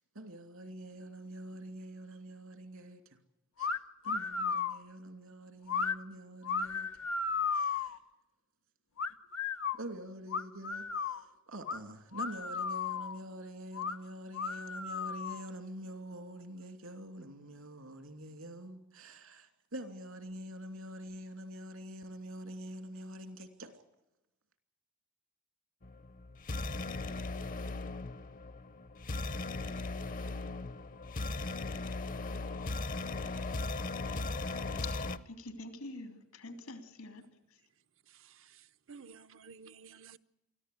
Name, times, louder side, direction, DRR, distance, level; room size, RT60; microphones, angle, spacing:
voice 1, 0.1-3.2 3.6-3.7 4.0-6.9 7.5-8.0 9.7-23.7, right 1 dB, 80° right, 2.9 m, -46 dB
sound 1, 3.6-3.8 4.1-4.8 5.7-6.0 6.4-8.0 9.0-9.8 10.3-11.2 11.7-11.8 12.1-13.2 13.7-14.0 14.3-15.5, left 5 dB, 65° left, 1.0 m, -34 dB
sound 2, 25.8-35.2, left 3 dB, 40° left, 0.7 m, -38 dB
voice 2, 34.8-37.2, left 3 dB, 90° left, 3.3 m, -46 dB
voice 3, 38.1-40.2, right 5 dB, 65° right, 0.7 m, -54 dB
24.0 x 14.5 x 9.5 m
head